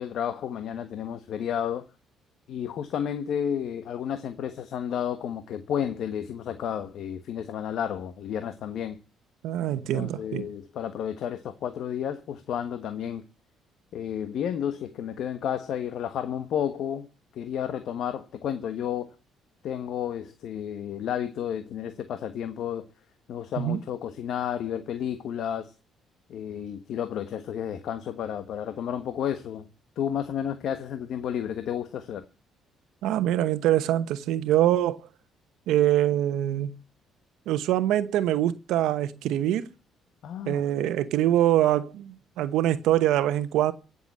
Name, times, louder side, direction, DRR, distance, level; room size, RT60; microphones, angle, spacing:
voice 1, 0.0-1.9 2.5-9.0 9.9-13.2 13.9-17.1 17.3-19.1 19.6-22.9 23.3-25.7 26.3-29.7 30.0-32.2 40.2-40.6, left 9 dB, 65° left, 1.4 m, -31 dB
voice 2, 9.4-10.4 23.6-23.8 33.0-35.0 35.7-36.7 37.5-39.6 40.5-43.7, right 12 dB, 85° right, 1.0 m, -24 dB
16.0 x 7.0 x 8.7 m
cardioid pair, 120°, 0 cm